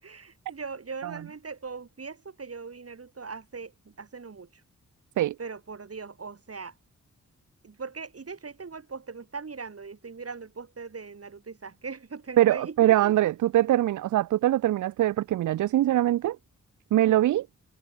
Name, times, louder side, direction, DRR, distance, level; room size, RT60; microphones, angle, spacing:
voice 1, 0.0-4.5 5.4-6.7 7.6-13.0, right 5 dB, 50° right, 4.1 m, -40 dB
voice 2, 12.4-16.4 16.9-17.5, right 13 dB, 75° right, 0.4 m, -23 dB
cardioid pair, 60°, 30 cm